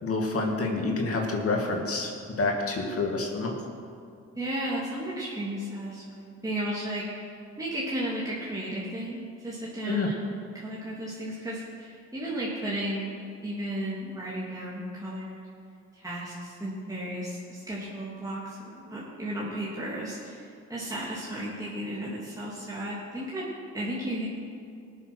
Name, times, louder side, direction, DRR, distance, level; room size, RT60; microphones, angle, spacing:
voice 1, 0.0-3.6 9.9-10.1, left 3 dB, 50° left, 1 dB, 2.3 m, -28 dB
voice 2, 4.3-15.4 15.9-24.3, right 1 dB, 10° right, -7 dB, 2.8 m, -34 dB
19.0 x 7.5 x 6.2 m, 2.4 s
cardioid pair, 90°, 30 cm